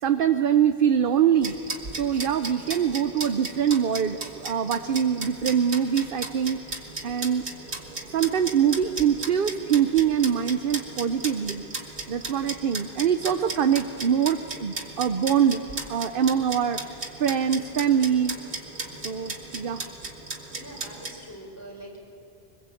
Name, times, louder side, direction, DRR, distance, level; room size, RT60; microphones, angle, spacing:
voice 1, 0.0-1.5 2.0-7.4 8.1-11.6 12.1-15.6 15.9-18.4 19.0-19.8, right 8 dB, 60° right, 8 dB, 0.9 m, -24 dB
sound 1, 1.4-21.1, right 2 dB, 85° right, 2.5 m, -36 dB
voice 2, 20.6-22.0, equal, 15° left, -1 dB, 4.9 m, -43 dB
24.5 x 21.5 x 8.5 m, 2.9 s
omnidirectional pair, 1.1 m